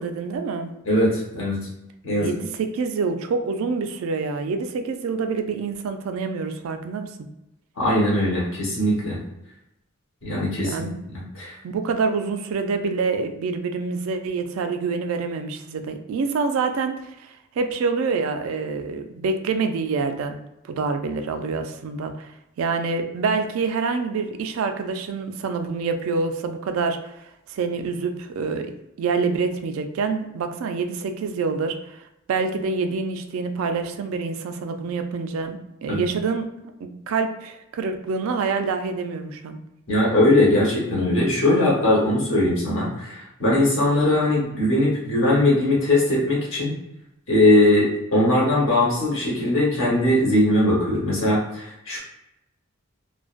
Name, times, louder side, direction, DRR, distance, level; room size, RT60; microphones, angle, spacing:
voice 1, 0.0-0.7 2.2-7.1 10.6-10.9 11.6-20.4 20.7-22.3 22.6-27.2 27.5-28.7 29.0-32.0 32.3-36.5 36.8-39.6, right 4 dB, 75° right, 8 dB, 0.3 m, -26 dB
voice 2, 0.8-1.6 2.0-2.3 7.8-9.2 10.2-11.5 35.9-36.0 39.9-46.7 47.3-52.0, left 1 dB, 60° left, -5 dB, 1.0 m, -20 dB
2.4 x 2.1 x 2.4 m, 0.88 s
head